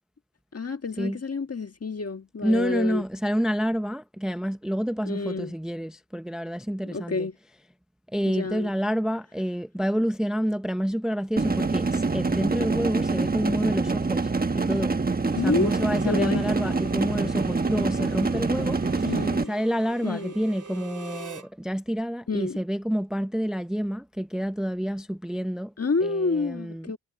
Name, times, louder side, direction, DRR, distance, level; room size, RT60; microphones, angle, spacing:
voice 1, 0.5-3.1 5.0-5.5 6.8-7.4 8.2-8.7 15.3-15.8 16.0-16.5 19.0-19.5 20.0-20.3 22.3-22.6 25.8-27.0, left 4 dB, 40° left, 1.6 m, -29 dB
voice 2, 2.4-7.3 8.1-14.3 14.5-15.0 15.4-19.1 19.5-25.7 26.0-27.0, equal, ahead, 0.6 m, -28 dB
sound 1, 11.4-19.4, right 3 dB, 25° right, 1.2 m, -25 dB
Harmonica, 15.1-21.5, right 5 dB, 55° right, 3.5 m, -44 dB
wide cardioid pair, 90°, 36 cm